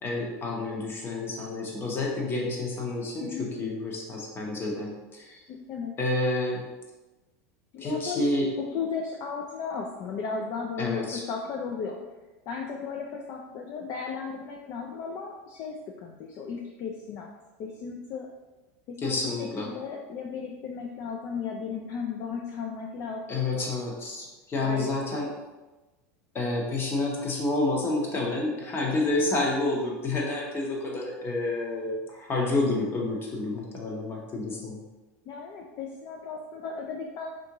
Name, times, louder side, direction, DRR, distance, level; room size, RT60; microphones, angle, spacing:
voice 1, 0.0-5.4 6.0-6.6 7.8-8.5 10.8-11.2 19.0-19.7 23.3-25.3 26.3-34.8, left 2 dB, 25° left, -2 dB, 0.8 m, -29 dB
voice 2, 3.2-3.5 5.5-6.0 7.7-12.0 12.5-17.3 17.6-18.3 18.9-23.8 24.6-25.3 35.3-37.3, left 5 dB, 45° left, 1 dB, 0.4 m, -35 dB
3.5 x 2.5 x 2.9 m, 1.1 s
supercardioid pair, 115°, 8 cm